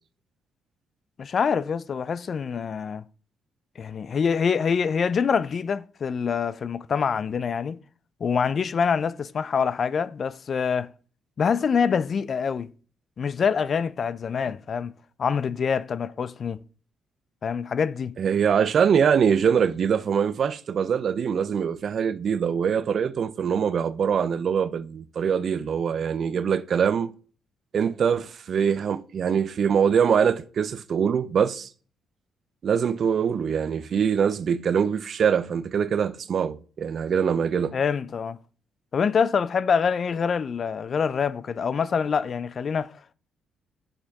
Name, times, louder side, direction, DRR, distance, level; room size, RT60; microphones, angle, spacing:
voice 1, 1.2-3.0 3.8-7.8 8.2-10.9 11.4-12.7 13.2-14.9 15.2-16.6 17.4-18.2 37.7-38.4 38.9-43.1, left 6 dB, 50° left, 0.4 m, -25 dB
voice 2, 18.2-27.1 27.7-31.7 32.6-37.8, right 7 dB, 55° right, 0.5 m, -23 dB
7.5 x 6.6 x 3.5 m
cardioid pair, 90°, 0 cm